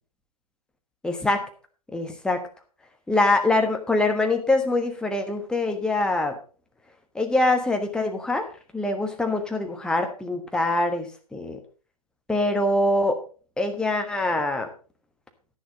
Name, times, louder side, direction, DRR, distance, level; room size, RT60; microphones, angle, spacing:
voice 1, 1.0-1.4 1.9-2.4 3.1-6.3 7.1-8.5 8.7-11.6 12.3-13.2 13.6-14.7, left 2 dB, 5° left, 4 dB, 1.3 m, -24 dB
11.0 x 10.5 x 4.0 m, 0.38 s
figure-of-eight pair, 120°, 20 cm